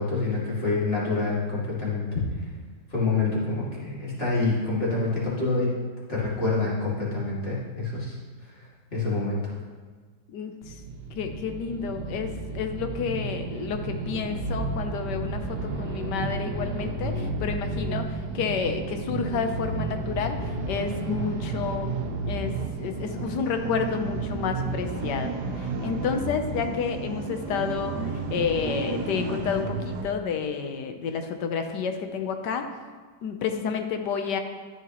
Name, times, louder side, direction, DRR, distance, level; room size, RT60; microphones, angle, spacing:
voice 1, 0.0-2.1 2.9-5.7 6.1-8.2 8.4-9.5, left 3 dB, 35° left, -7 dB, 2.6 m, -27 dB
voice 2, 10.3-10.8 11.2-21.9 22.2-32.6 33.2-34.4, left 6 dB, 90° left, 6 dB, 1.4 m, -30 dB
sound 1, 10.6-30.1, right 3 dB, 80° right, 1.4 m, -32 dB
13.5 x 6.1 x 3.0 m, 1.4 s
omnidirectional pair, 1.8 m